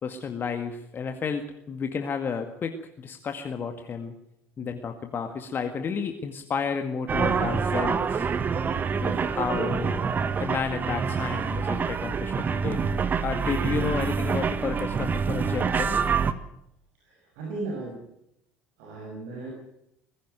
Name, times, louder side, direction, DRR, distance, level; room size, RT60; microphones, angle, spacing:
voice 1, 0.0-4.1 4.6-8.3 9.0-10.0 10.4-12.8 13.2-16.0, left 6 dB, 35° left, 6 dB, 2.0 m, -31 dB
sound 1, 7.1-16.3, right 6 dB, 30° right, 1.5 m, -26 dB
voice 2, 17.0-18.1 18.8-19.5, right 3 dB, 60° right, 0 dB, 6.2 m, -36 dB
21.0 x 16.0 x 9.2 m, 0.79 s
figure-of-eight pair, 60°, 6 cm